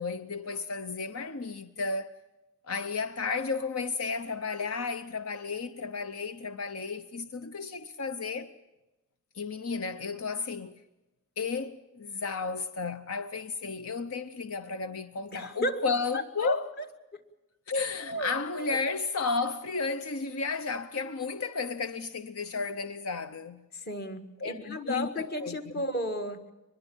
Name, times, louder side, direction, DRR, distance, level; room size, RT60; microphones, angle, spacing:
voice 1, 0.0-2.1 2.6-8.5 9.3-10.7 11.4-16.7 17.7-23.6 24.4-25.8, left 4 dB, 80° left, 0.8 m, -33 dB
voice 2, 15.3-15.8 16.1-16.5 18.1-18.3 18.7-18.8 23.7-26.5, left 1 dB, 45° left, 1.7 m, -33 dB
23.5 x 21.5 x 7.1 m
head